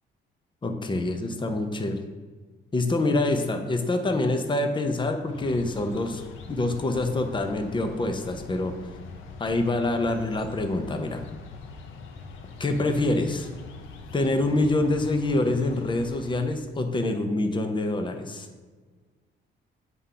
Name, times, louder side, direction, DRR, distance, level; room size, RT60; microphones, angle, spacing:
voice 1, 0.6-2.0 2.7-6.2 6.5-8.7 9.4-11.2 12.6-13.5 14.1-18.5, left 2 dB, 25° left, 6 dB, 0.8 m, -26 dB
sound 1, 5.2-16.6, left 4 dB, 85° left, 0.8 m, -43 dB
7.8 x 3.8 x 5.6 m, 1.4 s
cardioid pair, 90°, 20 cm